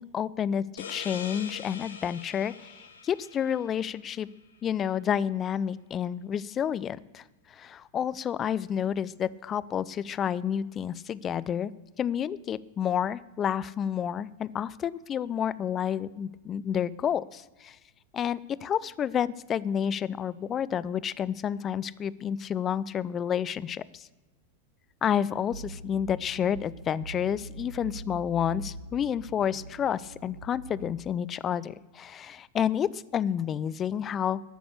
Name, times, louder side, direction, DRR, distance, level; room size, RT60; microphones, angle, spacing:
voice 1, 0.0-2.7 3.0-4.3 4.6-7.2 7.5-11.7 12.0-17.8 18.1-24.1 25.0-34.4, left 9 dB, 25° left, 18 dB, 0.5 m, -30 dB
sound 1, 0.8-4.2, left 6 dB, 65° left, 1.2 m, -43 dB
sound 2, 25.5-30.9, right 3 dB, 80° right, 0.7 m, -43 dB
12.5 x 6.1 x 8.4 m, 1.1 s
figure-of-eight pair, 90°, 0 cm